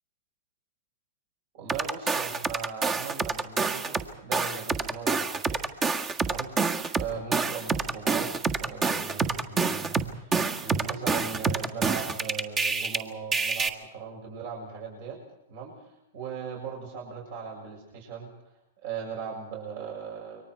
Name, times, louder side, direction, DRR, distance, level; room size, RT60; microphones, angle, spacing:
voice 1, 1.5-5.6 6.2-6.5 6.9-8.3 8.6-10.3 10.6-15.2 15.5-15.9 16.1-18.3 18.8-20.4, right 6 dB, 60° right, 0 dB, 7.2 m, -38 dB
sound 1, 1.7-4.0 4.3-13.0 13.3-13.7, right 4 dB, 25° right, 1.7 m, -27 dB
29.5 x 24.0 x 4.7 m, 0.83 s
hypercardioid pair, 125°, 0 cm